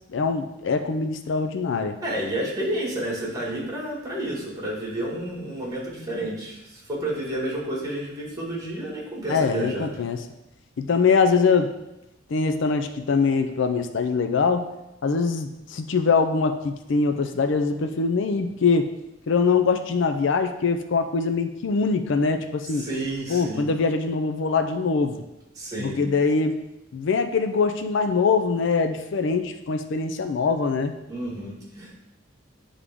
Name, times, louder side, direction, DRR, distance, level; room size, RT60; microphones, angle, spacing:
voice 1, 0.1-2.0 9.3-10.2 10.8-11.7 12.3-14.7 15.0-18.9 19.3-22.8 23.3-25.2 25.8-26.5 26.9-30.9, left 4 dB, 65° left, 7 dB, 0.4 m, -23 dB
voice 2, 2.0-9.9 22.7-23.6 25.5-26.0 31.1-31.9, right 1 dB, 20° right, -4 dB, 1.9 m, -30 dB
8.2 x 3.6 x 3.6 m, 0.92 s
head